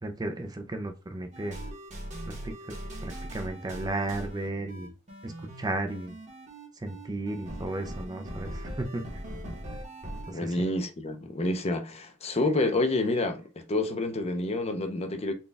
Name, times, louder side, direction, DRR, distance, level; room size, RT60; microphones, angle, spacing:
voice 1, 0.0-1.6 2.4-2.7 3.0-4.9 5.2-5.3 5.6-6.1 6.8-9.0 10.3-10.6, right 2 dB, 20° right, 0.4 m, -34 dB
sound 1, 1.3-10.3, right 1 dB, 35° right, 1.1 m, -40 dB
voice 2, 10.3-15.3, left 2 dB, 30° left, 0.6 m, -28 dB
4.1 x 2.3 x 3.3 m
head